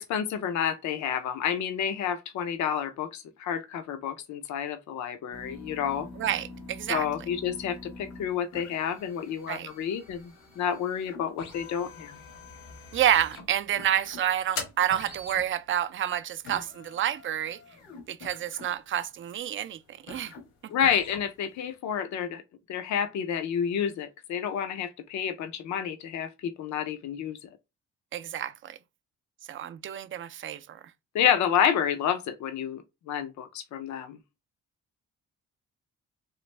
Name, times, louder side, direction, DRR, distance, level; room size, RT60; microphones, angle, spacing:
voice 1, 0.0-6.1 6.9-12.1 20.7-22.4 22.7-27.4 31.1-32.8 33.1-34.2, left 8 dB, 70° left, 0.5 m, -29 dB
sound 1, 5.3-21.7, left 4 dB, 85° left, 1.2 m, -45 dB
voice 2, 6.2-7.1 9.5-9.7 12.9-17.6 18.1-19.8 20.1-20.3 28.1-28.8 29.5-30.6, right 10 dB, 40° right, 0.4 m, -29 dB
3.1 x 2.5 x 3.2 m
cardioid pair, 90°, 30 cm